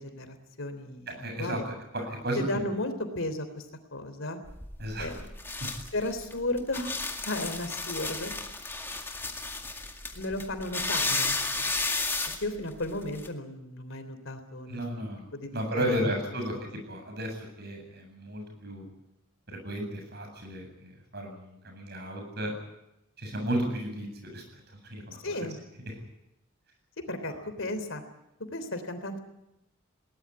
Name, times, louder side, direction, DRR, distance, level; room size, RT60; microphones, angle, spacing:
voice 1, 0.0-1.6 2.4-3.6 3.9-4.4 5.0-5.3 5.9-6.9 7.2-8.3 10.1-11.7 12.4-16.1 25.2-25.6 27.1-28.0 28.5-29.2, left 1 dB, 65° left, 9 dB, 3.4 m, -34 dB
voice 2, 1.1-1.6 1.9-2.6 4.8-5.1 5.6-5.7 14.7-18.9 19.5-22.6 23.2-25.4 25.9-26.0 27.2-27.7, equal, 50° right, 4 dB, 7.9 m, -34 dB
sound 1, 4.5-13.3, left 3 dB, 10° left, 2.1 m, -33 dB
21.5 x 19.0 x 9.7 m, 0.88 s
head